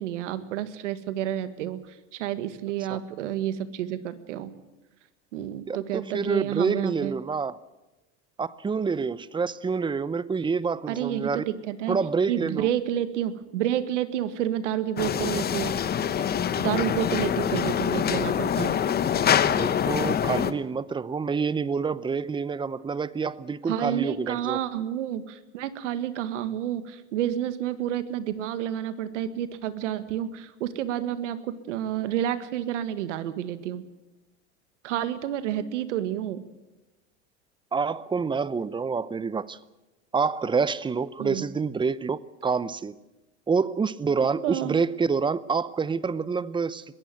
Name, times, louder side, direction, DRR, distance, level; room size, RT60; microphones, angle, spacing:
voice 1, 0.0-4.5 5.3-7.1 10.9-12.0 12.3-15.8 16.6-18.7 23.7-33.9 34.8-36.4 41.2-41.5 44.4-44.7, right 11 dB, 85° right, 12 dB, 1.8 m, -30 dB
voice 2, 5.7-7.6 8.4-11.4 11.9-12.7 19.6-24.6 37.7-39.6 40.1-42.9 43.5-46.8, right 5 dB, 15° right, 19 dB, 0.7 m, -27 dB
sound 1, 15.0-20.5, left 8 dB, 25° left, 1.1 m, -25 dB
21.0 x 16.0 x 9.2 m, 1.0 s
supercardioid pair, 120°, 35 cm